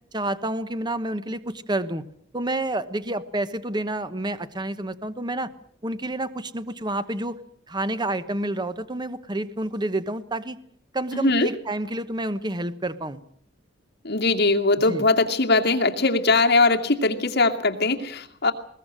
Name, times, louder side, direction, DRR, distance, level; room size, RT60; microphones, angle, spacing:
voice 1, 0.1-2.1 2.3-5.5 5.8-7.4 7.7-10.6 10.9-13.2 14.9-15.1, right 1 dB, 20° right, 12 dB, 1.1 m, -29 dB
voice 2, 11.1-11.5 14.0-18.5, left 3 dB, 60° left, 3 dB, 2.4 m, -21 dB
21.0 x 20.0 x 7.6 m, 0.65 s
head